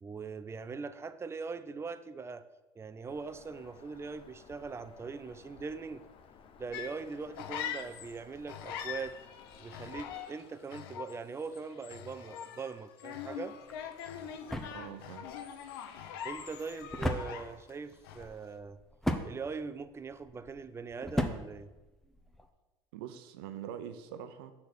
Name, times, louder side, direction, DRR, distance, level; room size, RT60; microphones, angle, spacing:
voice 1, 0.0-2.5 2.8-6.1 6.6-9.2 9.6-13.6 16.2-18.8 19.2-21.7, right 4 dB, 20° right, 11 dB, 0.5 m, -41 dB
Bird vocalization bird call bird song, 3.1-10.2, left 6 dB, 45° left, 0.7 m, -57 dB
sound 1, 6.7-8.2 8.5-17.8 18.0-18.4, left 9 dB, 80° left, 0.6 m, -43 dB
sound 2, 13.6-22.5, equal, 5° left, 0.8 m, -38 dB
voice 2, 14.7-15.3 22.9-24.5, right 9 dB, 80° right, 9 dB, 0.7 m, -44 dB
6.6 x 4.2 x 6.3 m, 1.1 s
hypercardioid pair, 80°, 12 cm